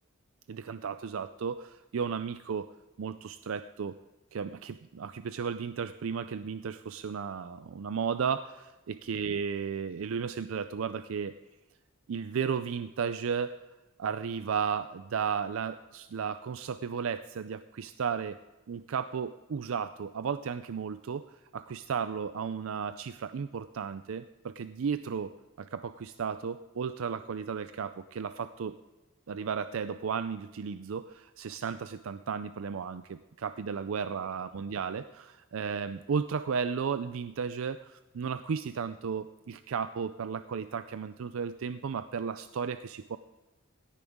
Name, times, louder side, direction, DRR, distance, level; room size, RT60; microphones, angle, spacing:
voice 1, 0.5-2.7 3.0-4.0 4.3-11.3 12.1-13.6 14.0-18.4 18.7-25.3 25.6-28.8 29.3-43.2, right 6 dB, 70° right, 12 dB, 0.4 m, -34 dB
17.0 x 10.0 x 3.6 m, 1.1 s
head